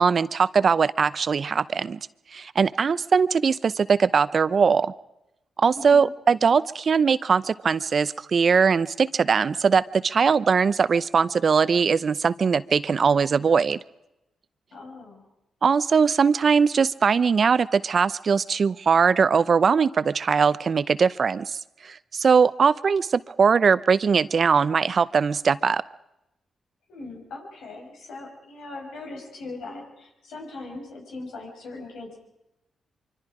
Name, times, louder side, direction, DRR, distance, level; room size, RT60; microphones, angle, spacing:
voice 1, 0.0-2.0 2.3-4.9 5.6-13.8 15.6-25.8, right 5 dB, 55° right, 16 dB, 0.7 m, -21 dB
voice 2, 5.7-6.1 14.7-15.2 26.9-32.2, left 2 dB, 85° left, 0 dB, 6.7 m, -40 dB
25.0 x 25.0 x 5.0 m, 0.90 s
cardioid pair, 70°, 0 cm